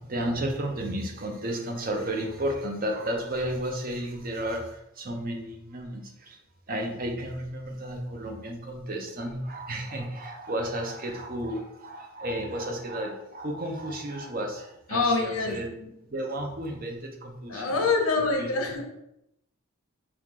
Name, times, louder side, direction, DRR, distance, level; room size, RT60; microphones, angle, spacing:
voice 1, 0.0-6.4 6.7-15.7 16.0-17.8 18.2-18.5, right 1 dB, 40° right, 2 dB, 0.6 m, -33 dB
voice 2, 14.9-15.9 17.5-18.9, left 3 dB, 75° left, 3 dB, 0.8 m, -26 dB
4.6 x 2.4 x 3.6 m, 0.81 s
head